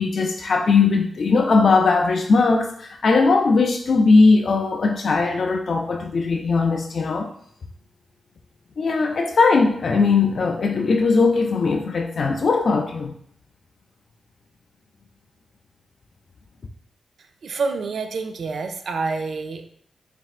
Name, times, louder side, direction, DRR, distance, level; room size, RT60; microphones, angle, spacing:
voice 1, 0.0-7.3 8.8-13.1, left 4 dB, 60° left, 0.3 m, -19 dB
voice 2, 17.4-19.6, right 4 dB, 75° right, 0.4 m, -27 dB
4.2 x 3.3 x 2.4 m
cardioid pair, 70°, 0 cm